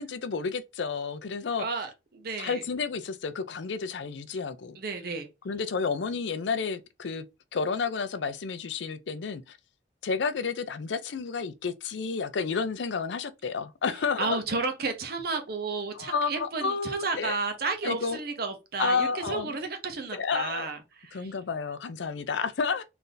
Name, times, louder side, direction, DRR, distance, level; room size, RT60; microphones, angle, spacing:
voice 1, 0.0-1.7 2.4-4.8 5.4-7.3 7.5-9.6 10.0-14.6 15.9-17.4 17.8-18.2 18.8-19.6 20.1-20.7 21.1-22.8, left 5 dB, 80° left, 0.5 m, -31 dB
voice 2, 1.6-2.6 4.8-5.3 14.2-20.8 21.0-21.3, right 4 dB, 55° right, 0.8 m, -32 dB
3.3 x 2.6 x 3.8 m
head